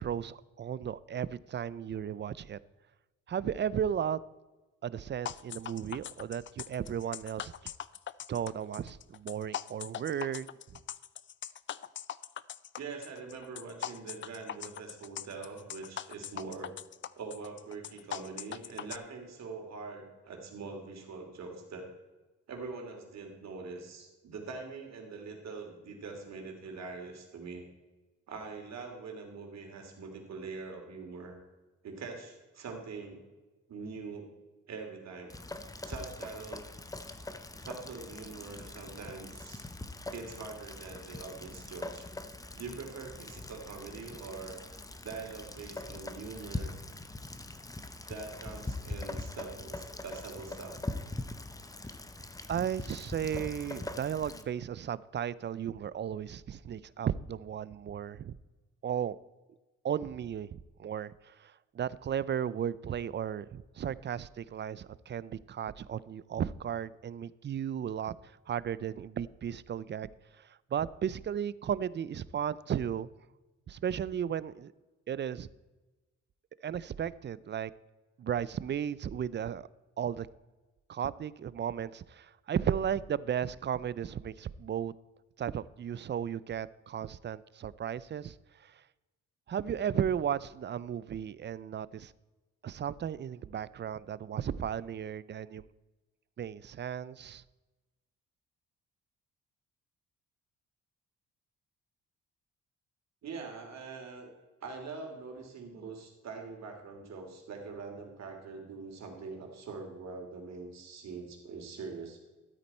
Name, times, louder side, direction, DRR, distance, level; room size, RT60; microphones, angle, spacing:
voice 1, 0.0-2.6 3.3-4.2 4.8-7.7 8.3-10.5 52.5-58.3 58.8-59.2 59.8-68.1 68.5-70.1 70.4-73.1 73.7-74.7 75.1-75.5 76.6-77.7 78.2-79.7 80.0-80.3 80.9-84.9 85.4-88.3 88.6-88.8 89.5-92.1 92.6-95.7 96.4-97.4, right 9 dB, 35° right, 19 dB, 0.4 m, -35 dB
sound 1, 5.3-19.0, left 10 dB, 40° left, 0.4 m, -41 dB
voice 2, 12.8-16.7 17.1-21.9 22.5-27.6 28.3-31.4 31.8-33.2 33.7-34.3 34.7-35.3 35.8-36.7 37.6-39.7 40.1-42.1 42.5-46.7 48.0-50.8 103.2-104.3 104.6-112.2, right 4 dB, 60° right, 2 dB, 3.0 m, -43 dB
Rain, 35.3-54.5, left 2 dB, 10° left, 0.8 m, -42 dB
13.0 x 8.4 x 4.3 m, 1.2 s
cardioid pair, 90°, 30 cm